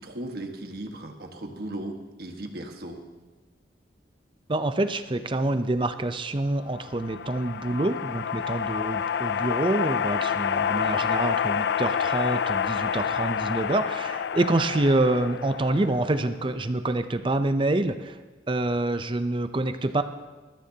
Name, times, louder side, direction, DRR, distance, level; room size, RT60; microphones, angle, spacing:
voice 1, 0.0-3.0, right 1 dB, 60° right, 3 dB, 1.5 m, -37 dB
voice 2, 4.5-18.2 18.5-20.0, right 2 dB, 30° right, 9 dB, 0.5 m, -26 dB
sound 1, 6.7-16.3, left 7 dB, 70° left, 0.4 m, -28 dB
20.5 x 13.5 x 2.8 m, 1.3 s
head